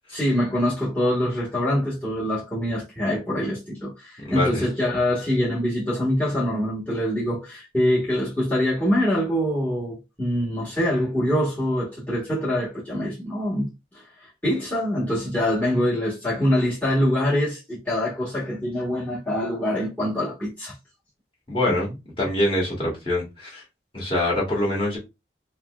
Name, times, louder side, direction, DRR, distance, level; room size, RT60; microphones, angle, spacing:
voice 1, 0.1-13.7 13.9-20.7 21.7-21.8, equal, 10° left, 1.0 m, -24 dB
voice 2, 4.2-4.7 21.5-23.6 23.9-25.0, left 1 dB, 30° left, 1.4 m, -25 dB
5.1 x 2.1 x 2.2 m
head